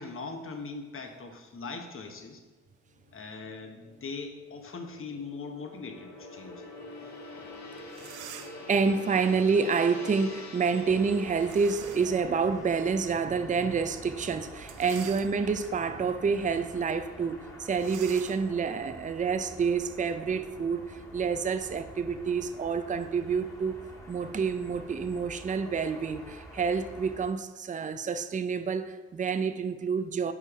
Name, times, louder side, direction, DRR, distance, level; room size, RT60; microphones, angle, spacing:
voice 1, 0.0-2.4 3.1-6.6, left 4 dB, 45° left, 4 dB, 1.1 m, -40 dB
Gong, 2.9-15.4 15.7-16.0, left 2 dB, 60° left, 1.5 m, -47 dB
sound 1, 7.5-7.6 7.9-8.7 11.4-12.3 12.8-12.9 14.6-15.7 16.3-16.5 16.7-16.9 17.7-20.2, right 11 dB, 75° right, 0.5 m, -47 dB
voice 2, 8.7-23.7 24.1-30.3, right 5 dB, 25° right, 10 dB, 0.5 m, -28 dB
sound 2, 10.8-27.3, equal, 10° left, 1.6 m, -48 dB
5.5 x 4.8 x 4.7 m, 1.2 s
supercardioid pair, 50°, 31 cm